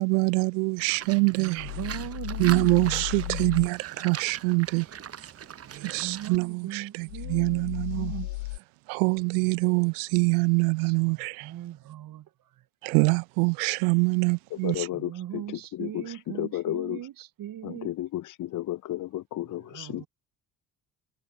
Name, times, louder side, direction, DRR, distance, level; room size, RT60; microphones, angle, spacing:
voice 1, 0.0-1.7 2.4-4.9 5.7-8.1 8.9-11.5 12.8-14.9, right 37 dB, 65° right, 1.3 m, -25 dB
Livestock farm animals working animals, 0.8-6.4, right 8 dB, 30° right, 1.2 m, -41 dB
voice 2, 1.4-3.6 5.6-7.6 7.9-8.4 10.8-10.9 11.4-12.3 14.9-17.9 19.5-20.1, right 12 dB, 45° right, 1.6 m, -40 dB
sound 1, 1.6-3.7 7.1-8.6, left 21 dB, 70° left, 3.4 m, -35 dB
voice 3, 14.6-17.0 17.6-20.1, left 14 dB, 40° left, 0.9 m, -33 dB
figure-of-eight pair, 50°, 46 cm